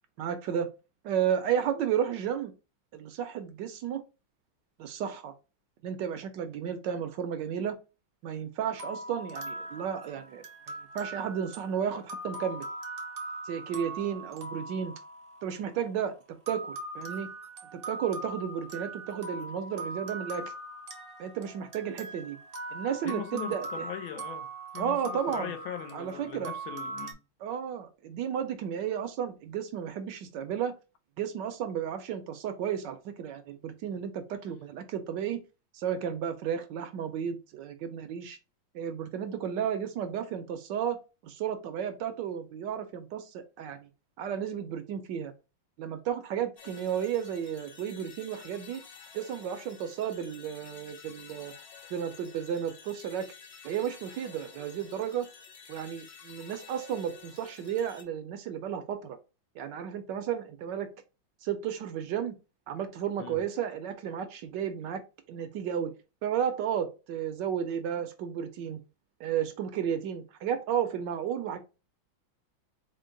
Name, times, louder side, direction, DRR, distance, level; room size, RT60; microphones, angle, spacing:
voice 1, 0.2-0.7 1.0-2.5 2.9-4.0 4.8-5.3 5.8-7.8 8.2-10.4 10.9-12.7 13.4-14.9 15.4-17.3 17.7-20.4 21.2-22.4 22.7-23.7 24.8-25.5 25.9-26.5 27.4-30.7 31.2-35.4 35.7-38.4 38.7-41.0 41.2-43.9 44.2-45.3 45.8-48.8 49.1-51.5 51.9-53.3 53.6-55.3 55.7-59.2 59.6-60.9 61.4-62.3 62.7-65.0 65.3-65.9 66.2-68.8 69.2-71.6, right 8 dB, 75° right, 1.1 m, -33 dB
Music box lullaby, 8.7-15.9 16.5-27.1, right 2 dB, 50° right, 0.6 m, -41 dB
voice 2, 23.0-24.5 24.7-27.2 63.2-63.4, left 10 dB, 80° left, 1.4 m, -40 dB
sound 1, 46.6-58.0, left 6 dB, 60° left, 1.1 m, -51 dB
4.4 x 2.1 x 3.7 m
omnidirectional pair, 2.2 m